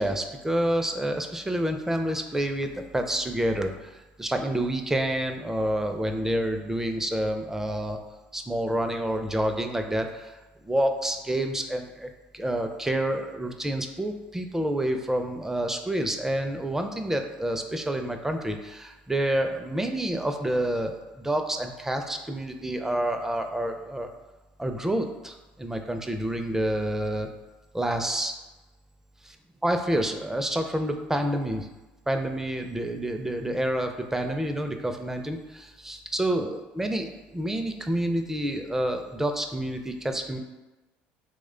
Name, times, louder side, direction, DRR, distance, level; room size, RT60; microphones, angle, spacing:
voice 1, 0.0-8.0 8.3-10.3 10.6-24.1 24.6-27.3 27.7-28.3 29.2-29.4 29.6-31.7 32.1-40.4, right 1 dB, 10° right, 5 dB, 0.4 m, -28 dB
3.0 x 2.1 x 3.7 m, 1.1 s
supercardioid pair, 80°, 5 cm